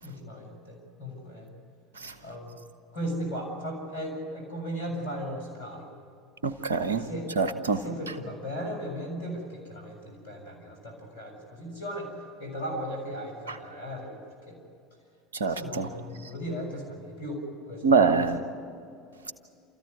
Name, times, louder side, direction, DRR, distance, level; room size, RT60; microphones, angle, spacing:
voice 1, 0.0-1.5 2.2-2.6 2.9-5.9 7.0-7.3 7.7-12.1 12.4-14.2 14.5-14.6 15.5-18.3, equal, 75° left, 1 dB, 6.6 m, -37 dB
voice 2, 6.4-7.0 7.4-7.8 15.4-15.9 17.8-18.4, right 5 dB, 80° right, 10 dB, 1.1 m, -24 dB
29.0 x 14.5 x 9.5 m, 2.4 s
figure-of-eight pair, 70°, 0 cm